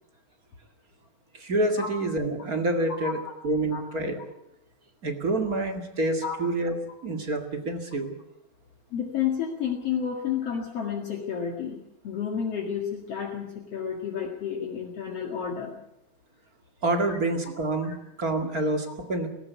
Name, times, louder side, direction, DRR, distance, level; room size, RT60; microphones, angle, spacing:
voice 1, 1.3-4.2 5.0-6.8 7.0-8.2 16.8-19.3, right 2 dB, 30° right, 5 dB, 2.1 m, -27 dB
voice 2, 8.9-15.8 17.1-17.2 17.8-18.0, left 8 dB, 55° left, 0 dB, 3.0 m, -31 dB
18.5 x 18.5 x 8.3 m, 0.85 s
omnidirectional pair, 3.5 m